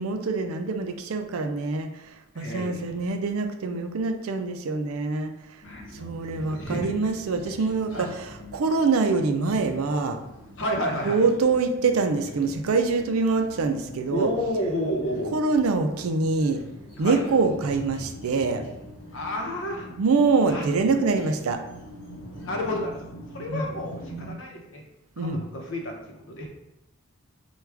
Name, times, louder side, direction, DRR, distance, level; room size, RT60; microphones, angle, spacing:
voice 1, 0.0-1.9 2.4-5.3 5.9-10.2 11.0-14.3 15.3-16.6 17.0-18.6 20.0-21.6 23.5-23.7 25.2-25.4, right 4 dB, 75° right, 6 dB, 0.4 m, -24 dB
voice 2, 2.3-2.9 5.6-6.1 6.5-7.1 7.9-8.1 10.6-11.3 14.1-15.4 17.0-17.2 19.1-19.9 20.5-20.7 22.4-24.8 25.2-26.5, equal, 60° left, 1 dB, 0.8 m, -31 dB
sound 1, 5.6-24.3, right 1 dB, 85° left, 1.1 m, -44 dB
4.6 x 2.3 x 3.4 m, 0.91 s
head